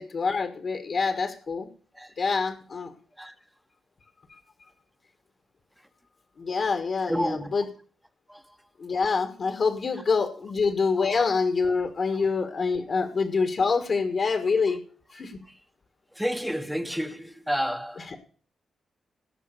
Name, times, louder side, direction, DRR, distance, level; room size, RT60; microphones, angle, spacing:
voice 1, 0.0-1.7 2.2-2.9 4.3-4.4 6.4-7.6 8.8-14.8 15.1-15.4, left 4 dB, 50° left, 1.6 m, -26 dB
voice 2, 7.1-7.5 8.3-8.6 9.9-10.0 10.9-11.3 12.1-12.3 12.8-13.0 15.1-15.6 16.1-18.2, equal, ahead, 1.1 m, -32 dB
18.0 x 6.2 x 6.8 m
cardioid pair, 110°, 0 cm